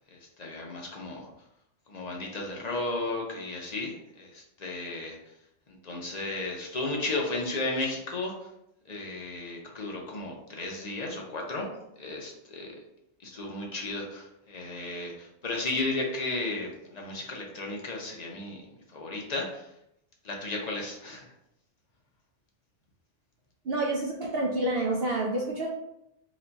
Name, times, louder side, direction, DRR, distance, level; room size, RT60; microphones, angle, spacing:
voice 1, 0.1-1.3 1.9-5.2 5.7-8.3 8.9-11.7 12.0-12.7 13.2-18.6 18.9-19.7 20.2-21.3, left 2 dB, 40° left, -1 dB, 0.7 m, -34 dB
voice 2, 23.6-25.7, right 2 dB, 60° right, -2 dB, 0.7 m, -28 dB
3.0 x 2.3 x 3.9 m, 0.79 s
omnidirectional pair, 1.3 m